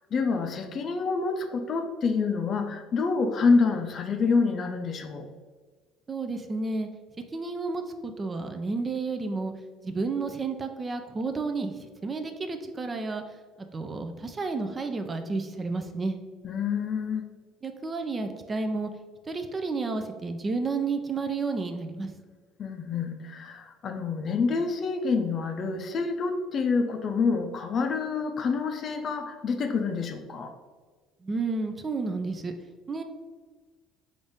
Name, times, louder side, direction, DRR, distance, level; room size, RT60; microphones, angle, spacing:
voice 1, 0.1-5.3 16.4-17.3 22.6-30.5, left 4 dB, 45° left, 5 dB, 0.5 m, -27 dB
voice 2, 6.1-6.9 7.3-9.5 9.8-13.2 13.6-16.2 17.6-18.9 19.3-22.1 31.2-32.5 32.9-33.0, right 3 dB, 25° right, 6 dB, 0.4 m, -31 dB
3.9 x 2.5 x 3.4 m, 1.4 s
supercardioid pair, 100°, 0 cm